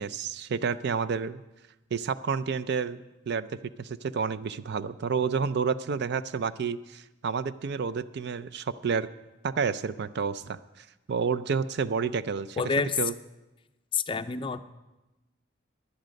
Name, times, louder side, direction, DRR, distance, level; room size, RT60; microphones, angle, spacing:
voice 1, 0.0-1.4 1.9-3.0 3.3-3.5 3.8-9.1 9.4-10.6 11.1-12.6 13.0-13.1, right 5 dB, 60° right, 15 dB, 0.4 m, -29 dB
voice 2, 12.6-13.0 13.9-14.6, left 5 dB, 25° left, 11 dB, 0.4 m, -28 dB
15.5 x 10.5 x 5.2 m, 1.1 s
head